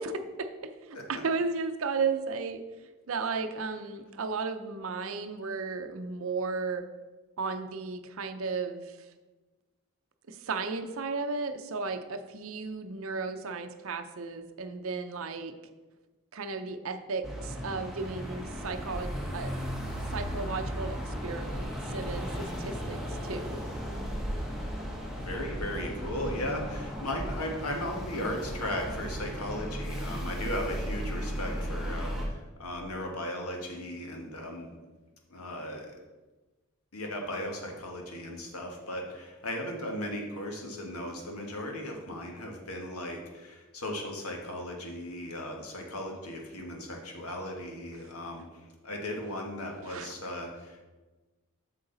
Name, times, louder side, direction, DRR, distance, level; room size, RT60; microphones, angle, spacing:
voice 1, 0.0-2.6 3.1-6.9 7.4-9.1 10.3-15.5 16.3-19.5 20.1-23.6 49.9-50.1, right 4 dB, 65° right, 8 dB, 0.6 m, -34 dB
sound 1, 17.2-32.3, equal, ahead, 1.1 m, -36 dB
voice 2, 25.2-34.7 35.3-35.9 36.9-50.8, left 1 dB, 85° left, 1 dB, 1.6 m, -37 dB
8.0 x 6.5 x 3.9 m, 1.2 s
head